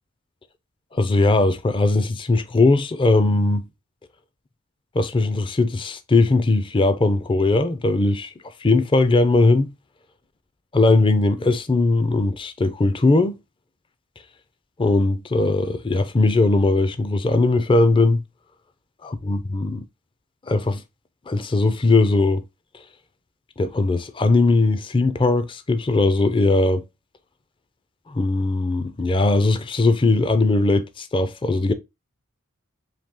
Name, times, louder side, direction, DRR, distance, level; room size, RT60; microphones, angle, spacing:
voice 1, 0.9-3.6 4.9-8.3 8.6-9.7 10.7-13.4 14.8-18.2 19.0-19.9 20.5-20.8 21.3-22.4 23.6-26.8 28.1-31.7, left 2 dB, 25° left, 0.4 m, -19 dB
4.1 x 2.7 x 3.6 m
head